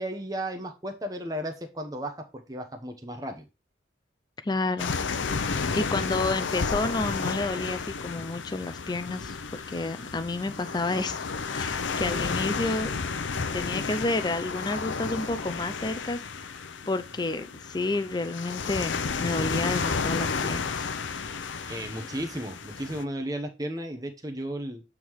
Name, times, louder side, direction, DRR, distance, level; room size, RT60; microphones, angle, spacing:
voice 1, 0.0-3.4 21.7-24.8, right 1 dB, 20° right, 0.9 m, -34 dB
voice 2, 4.4-4.9 5.7-11.3 11.5-12.9 13.5-16.2 16.9-20.9, left 2 dB, 20° left, 0.4 m, -30 dB
sound 1, 4.8-23.0, left 5 dB, 80° left, 0.6 m, -32 dB
8.2 x 3.7 x 4.6 m
head